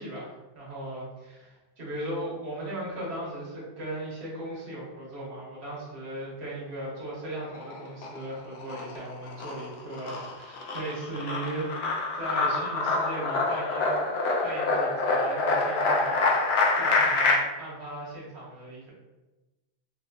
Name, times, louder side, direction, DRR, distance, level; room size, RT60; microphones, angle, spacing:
voice 1, 0.0-18.9, right 1 dB, 80° right, -6 dB, 1.5 m, -37 dB
sound 1, 7.4-8.2 8.6-17.3, left 3 dB, 80° left, 0.8 m, -26 dB
3.5 x 2.3 x 2.5 m, 1.1 s
omnidirectional pair, 1.1 m